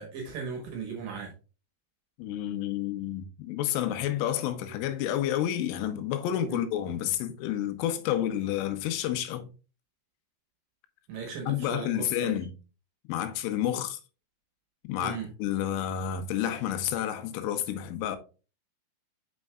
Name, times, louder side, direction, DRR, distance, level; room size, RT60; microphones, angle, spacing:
voice 1, 0.0-1.3 6.5-6.6 11.1-12.3 15.0-15.3, right 6 dB, 70° right, 2.2 m, -37 dB
voice 2, 2.2-9.5 11.5-12.5 13.1-14.0 14.9-18.2, left 11 dB, 90° left, 3.3 m, -30 dB
6.5 x 6.3 x 2.3 m
omnidirectional pair, 5.5 m